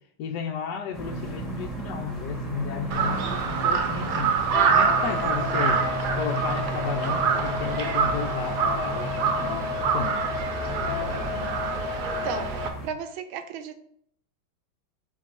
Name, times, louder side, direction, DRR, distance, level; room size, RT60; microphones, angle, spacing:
voice 1, 0.2-5.8 6.1-9.6 9.9-10.3, left 6 dB, 70° left, 3 dB, 1.0 m, -33 dB
sound 1, 0.9-12.9, right 2 dB, ahead, 1.1 m, -35 dB
Crow, 2.9-12.7, right 6 dB, 65° right, 1.2 m, -26 dB
Wind instrument woodwind instrument, 4.5-12.7, left 7 dB, 85° left, 1.4 m, -33 dB
voice 2, 12.0-12.6 12.8-13.8, right 7 dB, 85° right, 9 dB, 1.5 m, -34 dB
5.3 x 4.5 x 4.2 m, 0.67 s
omnidirectional pair, 2.2 m